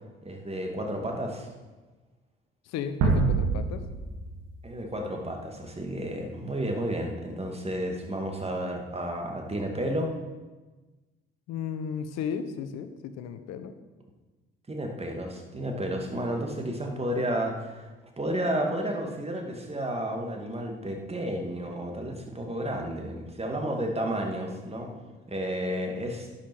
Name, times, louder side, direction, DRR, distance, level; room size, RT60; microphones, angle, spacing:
voice 1, 0.2-1.5 4.6-10.1 14.7-17.9 18.2-24.9 25.3-26.3, right 1 dB, 20° right, 2 dB, 2.5 m, -32 dB
voice 2, 2.7-3.8 11.5-13.7, left 7 dB, 60° left, 9 dB, 1.1 m, -34 dB
sound 1, 3.0-5.9, right 4 dB, 70° right, 2.0 m, -28 dB
11.5 x 9.1 x 4.7 m, 1.2 s
hypercardioid pair, 55°, 29 cm